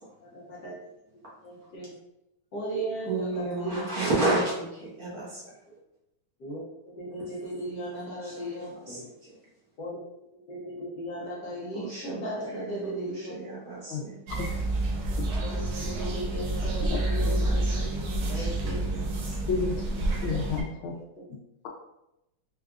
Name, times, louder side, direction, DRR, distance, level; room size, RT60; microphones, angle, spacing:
voice 1, 0.2-0.8 1.4-1.9 2.5-3.9 4.3-4.4 6.4-9.0 9.8-10.0 10.3-13.3 15.4-17.7 18.3-18.8 20.1-20.4 20.9-21.3, right 1 dB, 65° left, -4 dB, 1.2 m, -36 dB
voice 2, 3.1-5.8 7.1-7.2 7.7-9.3 11.7-14.2 15.3-15.4 17.2-19.6, right 2 dB, 55° right, -7 dB, 1.3 m, -33 dB
sound 1, 14.3-20.6, right 2 dB, 70° right, 0.9 m, -29 dB
voice 3, 19.5-20.9, left 5 dB, 80° left, 0 dB, 1.5 m, -31 dB
4.6 x 2.3 x 2.4 m, 0.88 s
omnidirectional pair, 2.3 m